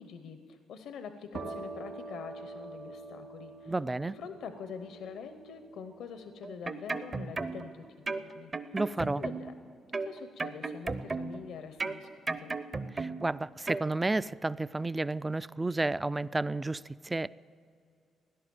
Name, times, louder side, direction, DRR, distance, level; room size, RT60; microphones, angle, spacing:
voice 1, 0.0-3.7 4.1-8.5 9.0-9.5 9.9-12.5, left 6 dB, 80° left, 9 dB, 0.8 m, -45 dB
sound 1, 1.3-8.8, right 3 dB, 65° right, 2.6 m, -47 dB
voice 2, 3.7-4.1 8.7-9.2 12.9-17.3, right 2 dB, 15° right, 18 dB, 0.3 m, -31 dB
sound 2, 6.4-7.7 8.1-9.6 9.9-11.5 11.8-13.3 13.7-13.9, right 3 dB, 35° right, 0.7 m, -35 dB
17.0 x 11.0 x 7.8 m, 2.3 s
cardioid pair, 90°, 0 cm